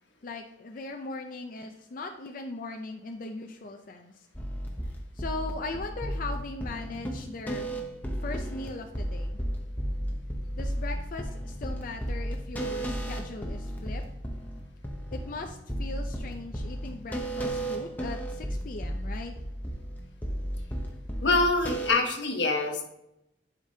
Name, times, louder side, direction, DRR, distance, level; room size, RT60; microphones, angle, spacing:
voice 1, 0.2-4.3 4.9-7.7 8.2-9.4 10.6-14.0 15.1-19.3, left 3 dB, 50° left, 4 dB, 0.5 m, -39 dB
sound 1, 4.3-21.9, right 1 dB, 10° left, 0.8 m, -34 dB
voice 2, 21.2-22.8, left 3 dB, 85° left, 3 dB, 1.2 m, -25 dB
10.5 x 5.1 x 2.8 m, 0.86 s
head